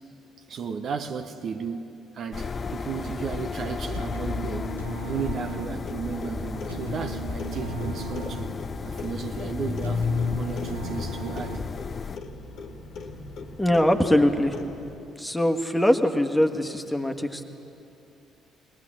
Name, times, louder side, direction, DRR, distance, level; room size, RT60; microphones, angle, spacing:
voice 1, 0.5-8.5 8.8-10.1 10.3-11.6, right 6 dB, 50° right, 0.9 m, -34 dB
sound 1, 2.3-12.2, left 5 dB, 35° left, 0.5 m, -32 dB
sound 2, 3.9-12.0, right 5 dB, 90° right, 0.9 m, -39 dB
Clock, 5.9-14.9, left 3 dB, 55° left, 1.6 m, -41 dB
voice 2, 13.6-14.6 15.2-17.4, left 1 dB, 10° left, 1.5 m, -22 dB
20.5 x 20.0 x 7.6 m
figure-of-eight pair, 45°, 0 cm